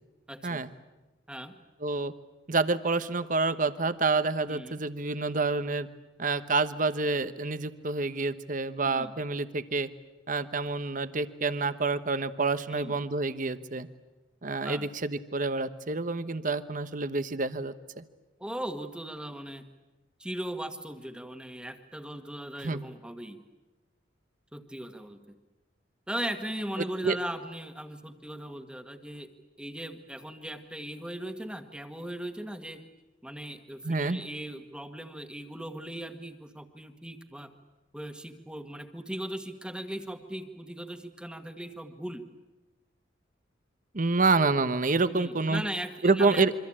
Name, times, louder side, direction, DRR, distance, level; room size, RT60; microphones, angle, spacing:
voice 1, 0.3-0.6 1.3-1.6 4.5-4.8 8.8-9.1 12.7-12.9 14.6-14.9 18.4-19.6 20.2-23.4 24.5-25.3 26.1-29.3 29.6-32.8 33.2-37.5 37.9-42.2 45.1-46.5, right 1 dB, 5° right, 7 dB, 1.7 m, -38 dB
voice 2, 1.8-2.1 2.5-5.9 6.2-9.9 10.3-13.9 14.4-18.0 22.6-22.8 27.0-27.2 33.8-34.2 43.9-45.6 46.0-46.5, right 3 dB, 45° right, 12 dB, 1.1 m, -28 dB
27.0 x 24.5 x 8.8 m, 1.1 s
head